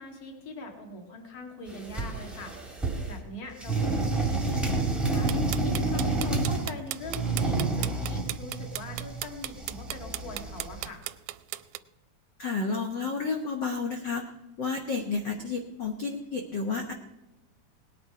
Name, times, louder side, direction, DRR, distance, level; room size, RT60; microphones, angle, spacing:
voice 1, 0.0-2.5 3.1-11.0, left 2 dB, 30° left, 3 dB, 2.1 m, -42 dB
sound 1, 1.7-3.2 3.6-6.7 7.0-10.9, right 3 dB, ahead, 0.9 m, -29 dB
sound 2, 5.3-11.8, right 16 dB, 80° right, 1.9 m, -35 dB
voice 2, 12.4-14.2 14.6-16.9, left 4 dB, 80° left, 3 dB, 1.0 m, -31 dB
19.0 x 9.6 x 4.8 m, 1.0 s
omnidirectional pair, 3.7 m